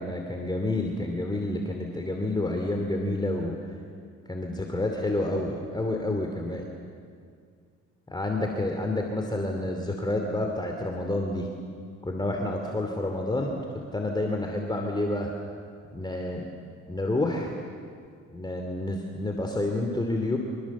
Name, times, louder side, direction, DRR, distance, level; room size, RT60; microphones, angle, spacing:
voice 1, 0.0-3.6 4.3-6.6 8.1-11.5 12.0-13.6 13.9-15.3 15.9-16.5 16.9-17.5 18.3-20.4, left 2 dB, 15° left, 2 dB, 2.7 m, -29 dB
25.5 x 25.5 x 7.3 m, 2.2 s
cardioid pair, 90°, 30 cm